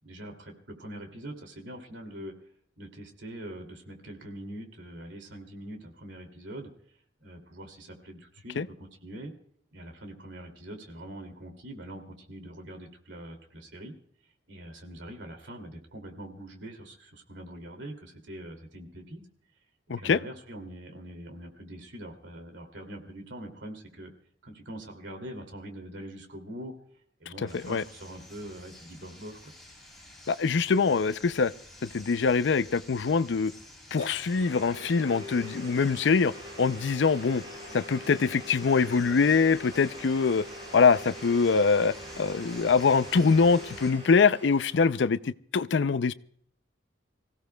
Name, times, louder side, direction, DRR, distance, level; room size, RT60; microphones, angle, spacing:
voice 1, 0.0-2.3 2.8-6.7 7.2-9.3 9.7-13.9 14.5-19.2 20.0-24.1 24.4-26.7 27.2-29.5, right 1 dB, 80° right, 4 dB, 2.6 m, -43 dB
sound 1, 27.5-43.9, left 1 dB, ahead, 5.7 m, -50 dB
voice 2, 30.3-31.5 31.8-33.5 33.9-36.3 36.6-37.4 37.7-40.4 40.7-46.1, left 5 dB, 75° left, 15 dB, 0.5 m, -24 dB
Domestic sounds home sounds, 33.5-33.6 34.0-45.1, equal, 30° right, 7.5 m, -44 dB
27.0 x 16.5 x 2.3 m, 0.63 s
head